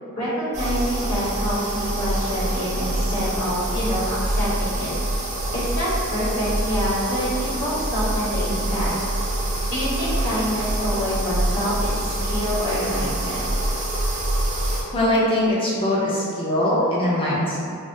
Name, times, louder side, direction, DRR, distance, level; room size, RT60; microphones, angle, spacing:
voice 1, 0.2-4.9 5.5-8.9 9.7-13.4, equal, 65° left, -10 dB, 1.2 m, -26 dB
sound 1, 0.5-14.8, right 1 dB, 35° right, 0.5 m, -25 dB
voice 2, 14.9-17.6, left 1 dB, 25° left, -7 dB, 0.6 m, -21 dB
3.4 x 2.1 x 2.6 m, 2.3 s
head